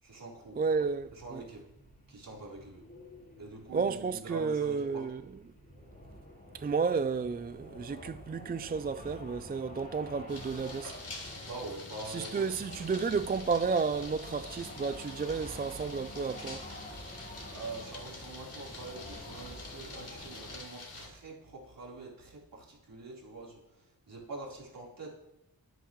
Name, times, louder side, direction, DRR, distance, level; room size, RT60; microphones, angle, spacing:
voice 1, 0.0-0.6 1.1-1.6 2.1-2.8 3.4-5.0 11.4-12.5 17.5-25.2, right 3 dB, 65° right, 4.0 m, -45 dB
voice 2, 0.6-1.5 3.7-5.2 6.5-11.0 12.1-16.7, right 5 dB, 25° right, 0.4 m, -32 dB
sound 1, 0.7-20.6, left 1 dB, 25° left, 4.1 m, -49 dB
sound 2, 10.3-21.1, left 3 dB, 40° left, 3.4 m, -47 dB
22.5 x 9.3 x 3.1 m
wide cardioid pair, 100°, 36 cm